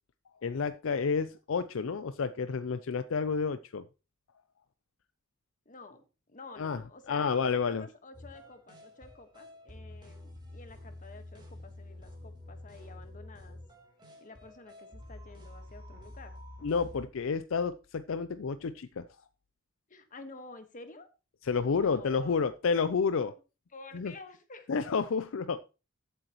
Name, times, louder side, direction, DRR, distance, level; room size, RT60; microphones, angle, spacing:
voice 1, 0.4-3.8 6.6-6.8 7.1-7.9 16.6-19.1 21.4-23.3 23.9-24.1 24.7-25.7, left 5 dB, 70° left, 13 dB, 0.5 m, -30 dB
voice 2, 5.6-13.6 14.2-16.3 19.9-21.1 21.8-22.5 23.2-23.4 23.7-24.7, left 3 dB, 40° left, 8 dB, 1.4 m, -50 dB
sound 1, 8.1-17.0, left 1 dB, 25° right, 3.5 m, -48 dB
14.5 x 8.0 x 3.0 m, 0.31 s
head